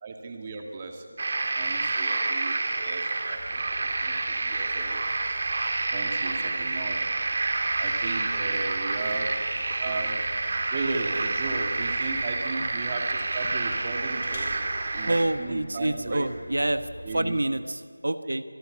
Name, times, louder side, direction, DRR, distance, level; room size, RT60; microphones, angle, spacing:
voice 1, 0.0-1.2 1.6-5.0 5.9-7.0 7.8-10.2 10.7-14.5 14.9-16.3 17.0-17.4, right 3 dB, 20° right, 3 dB, 1.9 m, -36 dB
sound 1, 1.2-15.2, right 3 dB, 40° right, 2.5 m, -28 dB
sound 2, 3.3-17.3, left 1 dB, 35° left, 6.0 m, -46 dB
voice 2, 15.1-18.4, right 1 dB, 75° right, 10 dB, 1.1 m, -27 dB
25.5 x 13.5 x 9.5 m, 2.2 s
figure-of-eight pair, 170°, 0 cm